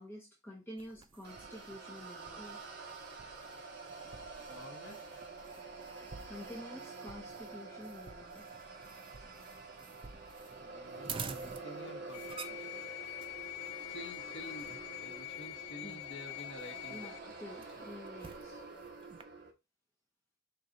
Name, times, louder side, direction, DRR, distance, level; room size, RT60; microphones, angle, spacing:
voice 1, 0.0-2.6 6.3-8.5 15.8-16.0 16.9-17.1 17.4-18.7, left 1 dB, 10° left, 0.7 m, -49 dB
sound 1, 0.8-19.2, right 5 dB, 25° right, 0.3 m, -51 dB
sound 2, 1.2-19.5, right 3 dB, 55° right, 1.0 m, -48 dB
voice 2, 4.5-5.3 10.6-12.8 13.8-17.9, left 1 dB, 60° left, 1.0 m, -51 dB
sound 3, 12.1-17.2, left 18 dB, 90° left, 0.3 m, -45 dB
4.9 x 2.3 x 3.8 m
head